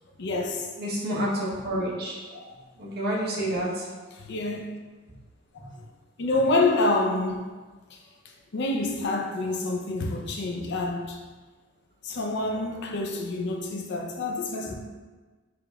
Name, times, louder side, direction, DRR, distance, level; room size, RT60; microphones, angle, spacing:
voice 1, 0.2-0.7 2.3-2.5 4.1-4.6 5.5-5.6 6.2-7.4 7.9-8.0 8.5-11.2 12.0-14.7, left 2 dB, 60° left, 0.5 m, -27 dB
voice 2, 0.8-2.2 2.8-3.9, equal, 55° right, 0.9 m, -28 dB
5.0 x 3.0 x 2.3 m
head